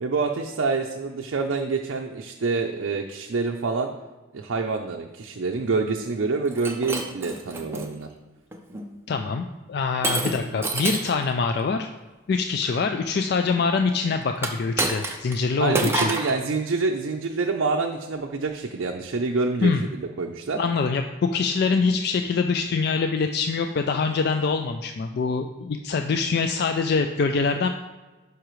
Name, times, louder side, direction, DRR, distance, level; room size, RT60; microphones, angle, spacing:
voice 1, 0.0-3.9 4.3-8.1 15.6-20.6, right 4 dB, 65° right, 2 dB, 0.5 m, -27 dB
Shatter, 6.5-7.9 8.5-8.9 10.0-11.2 14.4-15.4 15.7-16.4, right 2 dB, 10° right, 0.6 m, -28 dB
voice 2, 9.1-11.9 12.3-16.1 19.6-19.8 20.6-27.7, left 4 dB, 50° left, 6 dB, 0.3 m, -24 dB
11.5 x 4.8 x 3.1 m, 1.2 s
head